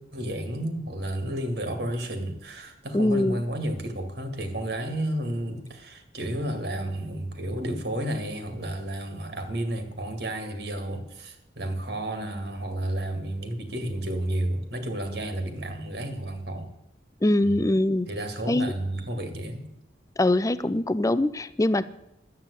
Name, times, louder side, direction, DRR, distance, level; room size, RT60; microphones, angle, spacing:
voice 1, 0.1-16.7 17.4-17.6 18.1-19.7, right 1 dB, 60° right, 7 dB, 2.1 m, -31 dB
voice 2, 2.9-3.4 17.2-18.1 18.5-18.7 20.2-21.8, left 1 dB, 20° left, 16 dB, 0.5 m, -23 dB
12.0 x 9.1 x 8.2 m, 0.81 s
head